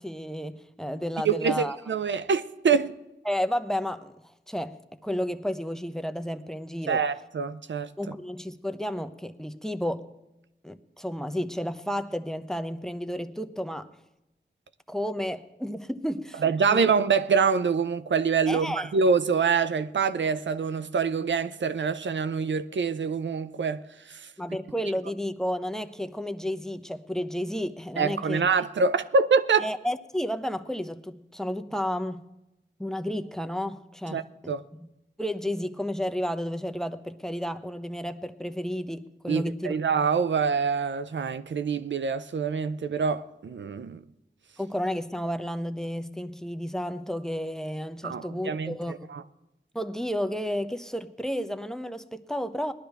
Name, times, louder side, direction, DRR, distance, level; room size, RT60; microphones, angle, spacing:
voice 1, 0.0-1.8 3.2-4.8 5.0-7.0 8.0-10.1 10.6-13.9 14.9-16.4 16.7-16.9 18.5-18.9 24.4-28.4 29.6-32.3 32.8-34.9 35.2-39.7 44.6-49.1 49.7-52.7, equal, 5° left, 0.7 m, -32 dB
voice 2, 1.2-2.9 6.9-7.9 16.4-23.8 24.1-24.3 28.0-29.7 34.1-34.6 39.3-44.0 48.0-49.2, right 5 dB, 80° right, 0.5 m, -25 dB
19.5 x 12.0 x 3.4 m
wide cardioid pair, 55°, 19 cm